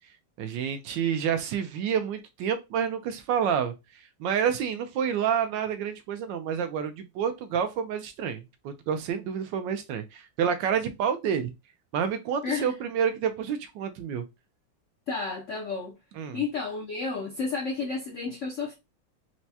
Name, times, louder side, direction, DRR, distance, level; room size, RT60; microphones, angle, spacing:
voice 1, 0.4-3.7 4.2-11.5 11.9-14.2 16.2-16.4, right 8 dB, 80° right, 1.3 m, -28 dB
voice 2, 12.4-12.8 15.1-16.0 16.3-18.8, left 4 dB, 70° left, 0.7 m, -31 dB
4.5 x 2.1 x 2.7 m
omnidirectional pair, 2.0 m